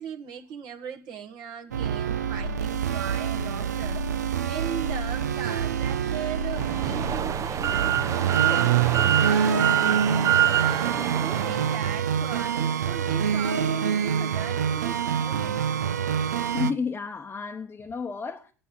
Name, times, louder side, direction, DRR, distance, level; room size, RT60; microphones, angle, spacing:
voice 1, 0.0-8.8 9.2-9.7 10.6-15.6, right 7 dB, 50° right, 1.4 m, -38 dB
sound 1, 1.7-16.7, right 7 dB, 80° right, 0.6 m, -26 dB
sound 2, 6.5-11.8, right 11 dB, 35° right, 0.7 m, -26 dB
voice 2, 16.5-18.5, left 5 dB, 20° left, 0.9 m, -31 dB
9.6 x 6.8 x 8.3 m
figure-of-eight pair, 70°, 9 cm